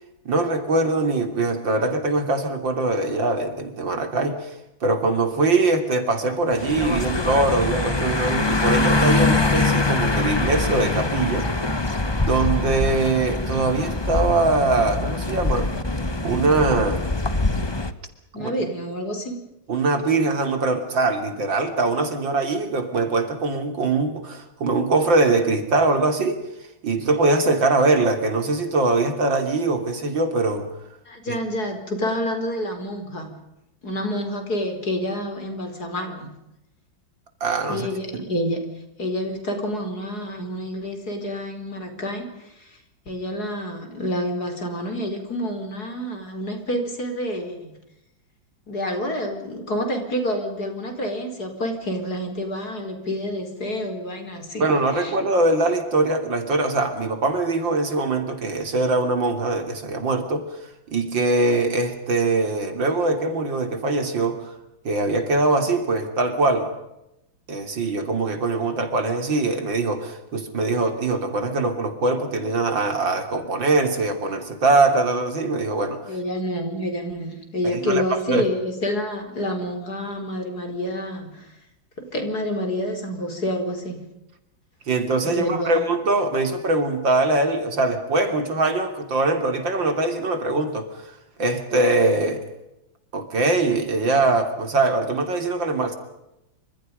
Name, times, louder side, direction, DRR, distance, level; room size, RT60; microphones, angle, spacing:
voice 1, 0.3-4.5 4.8-11.5 12.2-15.7 16.2-17.0 18.3-18.5 19.7-26.4 26.8-30.7 31.3-31.4 37.4-37.9 54.6-60.5 60.9-64.5 64.9-66.7 67.5-76.2 77.7-78.4 84.9-91.0 91.4-92.5 93.1-96.0, right 2 dB, 70° right, 7 dB, 3.7 m, -22 dB
sound 1, 6.5-17.9, left 2 dB, 15° left, 1.1 m, -23 dB
voice 2, 18.3-19.4 31.1-33.4 33.8-36.3 37.7-38.6 39.0-42.8 43.0-47.7 48.7-54.6 54.9-55.1 76.1-81.5 82.0-84.0 85.2-85.9, equal, 50° left, 5 dB, 5.1 m, -28 dB
28.5 x 26.5 x 5.3 m, 0.89 s
omnidirectional pair, 2.1 m